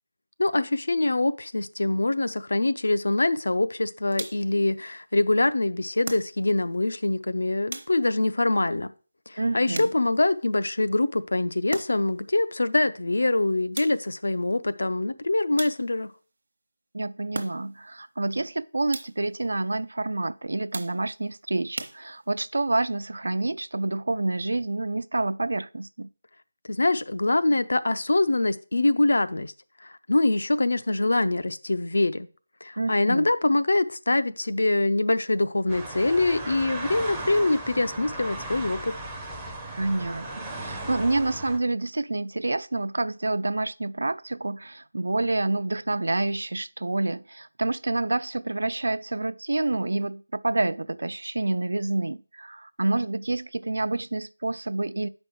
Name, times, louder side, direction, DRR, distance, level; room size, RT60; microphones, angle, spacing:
voice 1, 0.4-8.9 9.3-16.1 26.7-29.5 29.8-32.3 32.6-38.9, left 2 dB, 75° left, 0.5 m, -24 dB
sound 1, 4.1-4.6 6.0-6.7 7.7-8.3 9.7-10.3 11.7-12.2 13.8-14.3 15.6-16.1 17.3-17.9 18.9-19.4 20.7-21.2 21.8-22.5, right 2 dB, 55° right, 0.9 m, -38 dB
voice 2, 9.4-9.9 16.9-26.1 32.8-33.3 39.8-55.1, right 2 dB, 75° right, 0.3 m, -28 dB
sound 2, 35.7-41.6, right 2 dB, 5° right, 0.5 m, -36 dB
7.0 x 5.3 x 4.5 m
figure-of-eight pair, 175°, 0 cm